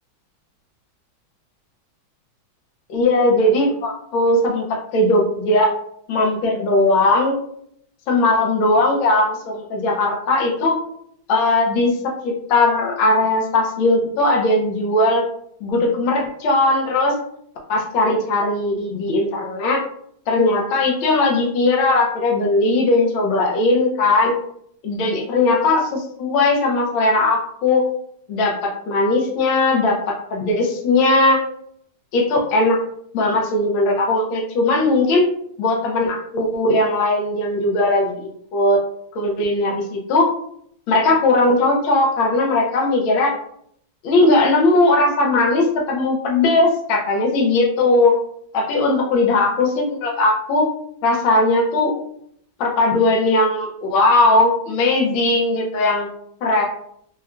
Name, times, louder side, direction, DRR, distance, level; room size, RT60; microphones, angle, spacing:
voice 1, 2.9-4.6 4.9-5.7 6.1-7.3 8.1-10.8 11.3-15.2 15.6-17.1 17.7-19.8 20.3-24.3 24.8-27.9 28.3-31.4 32.1-32.8 33.1-35.3 35.6-38.2 38.5-38.8 39.1-40.3 40.9-43.3 44.0-48.1 48.5-50.7 51.0-51.9 52.6-56.1 56.4-56.6, left 2 dB, 85° left, -1 dB, 1.5 m, -18 dB
4.1 x 2.3 x 2.3 m, 0.68 s
omnidirectional pair, 2.1 m